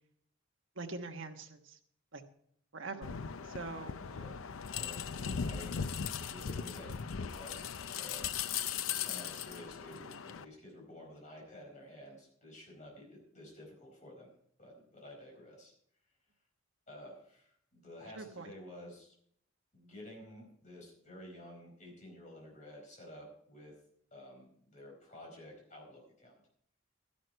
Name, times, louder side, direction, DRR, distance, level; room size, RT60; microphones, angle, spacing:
voice 1, 0.8-1.8 2.1-2.2 2.7-3.9 18.2-18.5, right 3 dB, 65° right, 5 dB, 1.3 m, -44 dB
sound 1, 3.0-10.4, left 7 dB, 75° left, 0.6 m, -38 dB
voice 2, 4.0-4.4 4.7-5.9 6.3-8.3 8.9-14.3 14.6-15.7 16.9-19.1 19.7-23.8 24.1-26.4, left 1 dB, 35° left, -1 dB, 4.7 m, -51 dB
12.0 x 11.0 x 4.5 m, 0.67 s
head